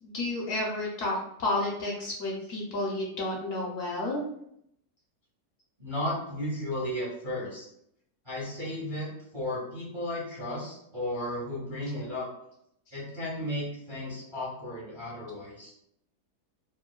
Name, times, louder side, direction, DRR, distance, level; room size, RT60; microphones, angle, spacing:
voice 1, 0.0-4.2, left 2 dB, 65° left, -3 dB, 0.9 m, -31 dB
voice 2, 5.8-7.7 8.2-12.2 12.9-15.7, left 1 dB, 25° right, -7 dB, 0.7 m, -34 dB
3.0 x 2.2 x 2.2 m, 0.73 s
omnidirectional pair, 1.7 m